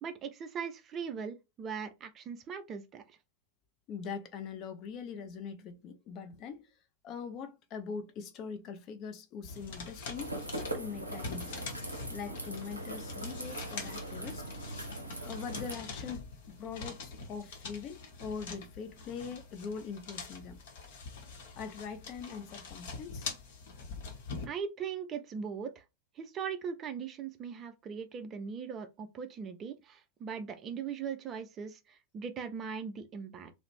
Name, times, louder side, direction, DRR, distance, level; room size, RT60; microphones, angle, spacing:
voice 1, 0.0-3.2 24.5-25.8 26.2-33.5, right 6 dB, 30° right, 0.4 m, -40 dB
voice 2, 3.9-6.7 7.0-10.4 10.7-11.7 12.1-14.5 15.2-20.6 21.6-23.3, left 6 dB, 35° left, 0.5 m, -42 dB
sound 1, 9.4-24.5, left 4 dB, 55° left, 0.8 m, -44 dB
sound 2, 10.2-15.7, right 1 dB, 85° right, 0.5 m, -40 dB
2.4 x 2.0 x 3.0 m
figure-of-eight pair, 90°, 0 cm